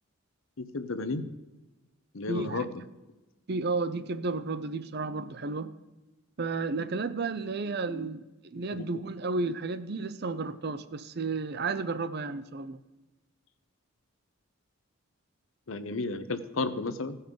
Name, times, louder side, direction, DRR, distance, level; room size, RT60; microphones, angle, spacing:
voice 1, 0.6-1.3 2.1-2.8 8.7-8.9 15.7-17.2, left 3 dB, 70° left, 11 dB, 0.8 m, -33 dB
voice 2, 2.3-2.6 3.5-5.7 6.4-12.8, right 3 dB, 50° right, 13 dB, 0.5 m, -32 dB
16.5 x 5.5 x 5.2 m, 1.1 s
head